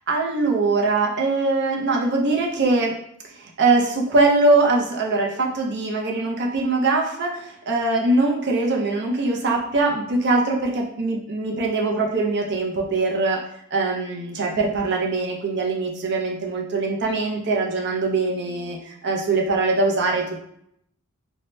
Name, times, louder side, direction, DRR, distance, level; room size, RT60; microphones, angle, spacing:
voice 1, 0.1-2.9 3.3-20.5, right 3 dB, 50° right, 0 dB, 0.5 m, -22 dB
2.6 x 2.0 x 3.2 m, 0.72 s
head